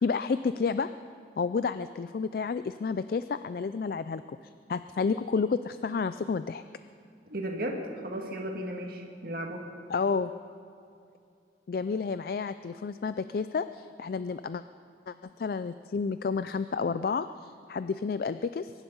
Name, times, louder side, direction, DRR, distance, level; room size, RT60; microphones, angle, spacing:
voice 1, 0.0-0.9 1.4-6.6 9.9-10.3 11.7-14.6 15.1-18.7, left 5 dB, 50° left, 12 dB, 0.3 m, -30 dB
voice 2, 7.3-9.7, right 1 dB, 50° right, 2 dB, 1.9 m, -35 dB
23.0 x 11.0 x 5.5 m, 2.5 s
head